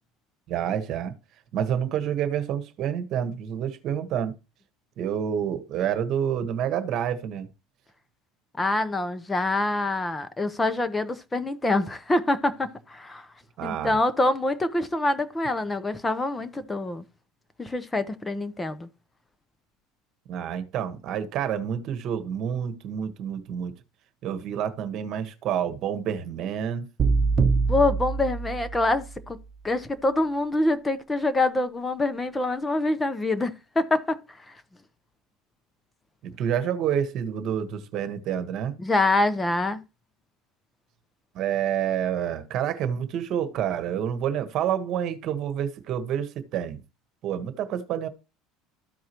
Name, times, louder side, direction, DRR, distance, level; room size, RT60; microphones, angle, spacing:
voice 1, 0.5-1.1 1.5-4.3 5.0-7.5 13.6-14.0 20.3-23.7 24.2-26.9 36.2-38.8 41.3-46.8 47.2-48.1, right 9 dB, 50° right, 1.3 m, -28 dB
voice 2, 8.6-13.3 13.6-17.0 17.6-18.9 27.7-29.4 29.6-34.2 38.8-39.8, left 2 dB, 15° left, 0.9 m, -25 dB
sound 1, 27.0-29.1, right 4 dB, 30° right, 1.2 m, -24 dB
13.5 x 4.7 x 3.0 m
supercardioid pair, 120°, 0 cm